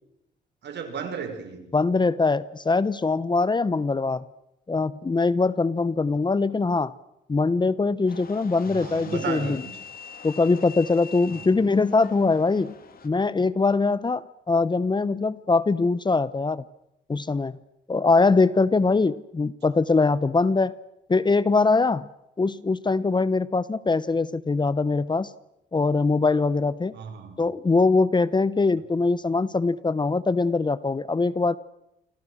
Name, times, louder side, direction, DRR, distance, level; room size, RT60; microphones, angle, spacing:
voice 1, 0.6-1.7 8.7-9.7 11.3-11.5 26.9-27.4, right 6 dB, 70° right, 7 dB, 5.5 m, -34 dB
voice 2, 1.7-4.2 4.7-6.9 7.3-9.6 10.2-12.7 13.0-14.2 14.5-16.6 17.1-17.6 17.9-20.7 21.1-22.1 22.4-25.3 25.7-26.9 27.4-31.6, left 3 dB, 25° left, 17 dB, 1.0 m, -22 dB
sound 1, 8.1-13.1, left 6 dB, 50° left, 3.4 m, -44 dB
28.5 x 25.5 x 6.4 m, 0.84 s
cardioid pair, 95°, 19 cm